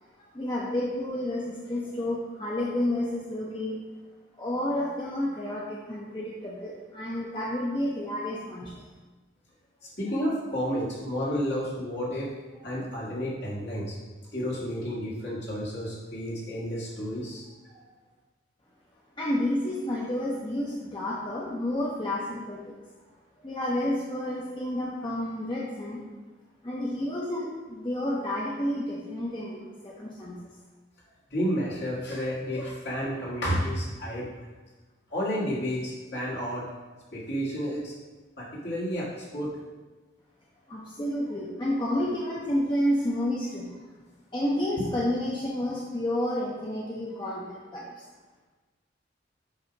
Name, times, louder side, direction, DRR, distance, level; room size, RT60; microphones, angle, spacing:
voice 1, 0.3-3.8 4.4-8.9 19.2-22.8 23.4-26.0 26.6-30.4 40.7-43.8 44.3-47.9, left 1 dB, 25° left, -5 dB, 0.6 m, -30 dB
voice 2, 9.8-14.0 14.3-17.8 31.3-34.3 35.1-36.7 37.1-37.9 38.4-39.6, equal, 55° left, -7 dB, 1.9 m, -31 dB
8.0 x 2.7 x 5.1 m, 1.3 s
head